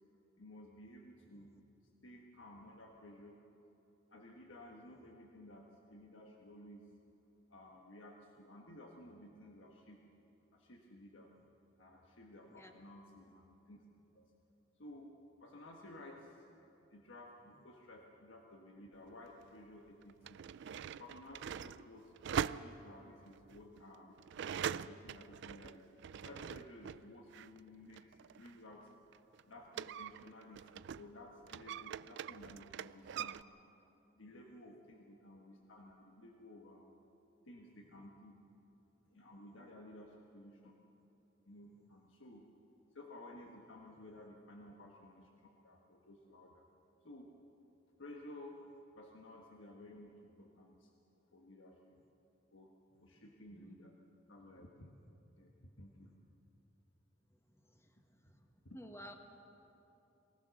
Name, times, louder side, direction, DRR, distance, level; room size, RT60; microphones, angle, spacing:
voice 1, 0.4-1.6 2.0-3.4 4.1-6.9 7.5-10.0 10.5-11.3 11.8-13.8 14.1-14.3 14.8-15.1 15.4-16.5 16.9-20.4 20.9-22.1 22.5-24.2 24.5-25.9 26.2-28.9 29.5-33.4 34.1-36.9 37.4-38.4 39.0-40.7 41.4-42.4 42.9-46.6 47.0-47.3 48.0-48.6 48.9-50.9 51.3-52.0 52.5-52.7 53.0-54.0 54.3-54.9 55.4-56.1 58.6-58.8, left 1 dB, 75° left, 0 dB, 1.5 m, -55 dB
sound 1, 19.1-19.2 20.0-27.0 27.3-31.1 31.4-33.4, right 8 dB, 65° right, 0.4 m, -43 dB
voice 2, 58.7-59.2, equal, 15° left, 4 dB, 1.4 m, -52 dB
23.0 x 17.0 x 6.5 m, 2.9 s
head